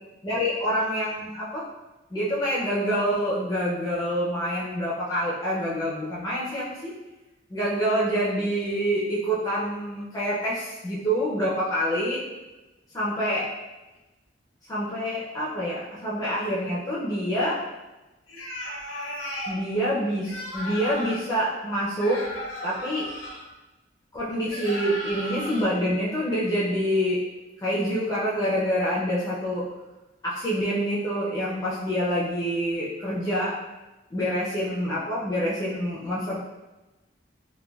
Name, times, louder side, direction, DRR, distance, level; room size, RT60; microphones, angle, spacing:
voice 1, 0.2-1.6 2.1-6.9 7.5-12.2 12.9-13.5 14.7-17.6 19.5-22.3 22.6-23.1 24.1-27.2 27.6-29.6 30.2-33.6 34.1-36.4, equal, 20° left, -8 dB, 0.4 m, -26 dB
sound 1, 18.3-19.6 20.2-21.3 22.0-23.4 24.5-25.6, left 1 dB, 75° left, 0.9 m, -35 dB
3.2 x 2.2 x 2.2 m, 1.1 s
head